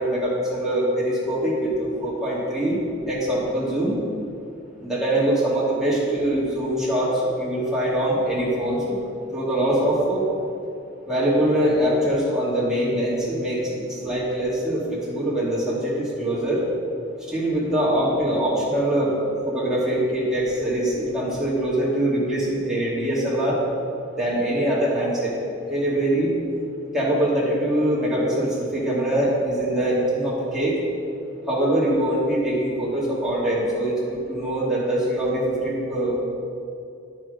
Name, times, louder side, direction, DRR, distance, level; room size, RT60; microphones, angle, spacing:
voice 1, 0.0-2.8 3.0-4.0 4.8-9.0 9.3-10.2 11.1-16.6 17.3-19.1 19.5-23.6 24.2-25.3 25.6-26.3 26.9-30.8 31.5-36.1, right 1 dB, 5° right, -8 dB, 2.3 m, -23 dB
9.6 x 6.2 x 5.0 m, 2.5 s
head